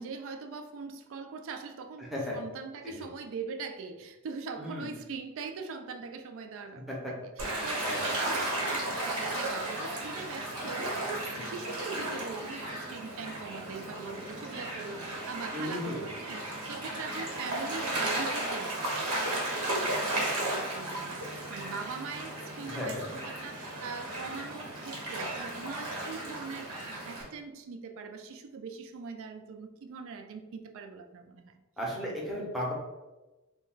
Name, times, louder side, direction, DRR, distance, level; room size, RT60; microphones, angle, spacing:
voice 1, 0.0-31.5, right 5 dB, 60° right, 7 dB, 0.3 m, -42 dB
voice 2, 2.0-2.4 2.8-3.1 4.6-4.9 6.9-7.2 7.8-8.1 11.4-11.5 15.5-16.0 22.7-23.1 31.8-32.7, left 1 dB, ahead, -4 dB, 0.6 m, -35 dB
Gull seagull / Waves surf, 7.4-27.2, right 1 dB, 85° right, 1.0 m, -34 dB
2.2 x 2.1 x 3.8 m, 1.1 s
head